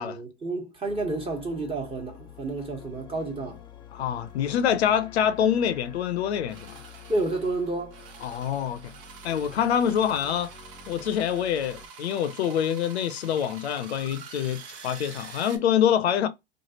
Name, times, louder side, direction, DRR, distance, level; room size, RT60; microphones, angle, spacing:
voice 1, 0.0-3.6 7.1-8.0, right 2 dB, 20° right, 1.1 m, -30 dB
sound 1, 0.8-11.9, left 7 dB, 15° left, 0.4 m, -48 dB
voice 2, 3.9-6.8 8.2-8.9 9.2-10.5 10.9-16.3, left 9 dB, 85° left, 0.6 m, -26 dB
sound 2, 4.3-4.4 4.7-4.8 6.5-15.6, right 6 dB, 60° right, 0.9 m, -46 dB
3.1 x 2.4 x 2.8 m
hypercardioid pair, 110°, 31 cm